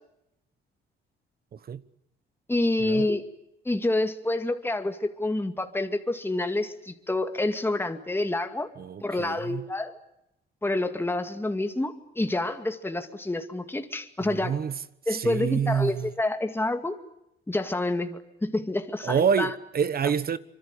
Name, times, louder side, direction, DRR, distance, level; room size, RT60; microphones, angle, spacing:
voice 1, 1.5-1.8 2.8-3.1 8.8-9.7 14.2-14.8 15.1-16.1 19.0-20.4, right 7 dB, 50° right, 1.3 m, -27 dB
voice 2, 2.5-3.2 3.7-8.7 9.0-9.9 10.6-14.6 15.1-17.0 17.5-19.5, left 2 dB, 10° left, 2.3 m, -28 dB
26.0 x 24.5 x 8.4 m
cardioid pair, 90°, 20 cm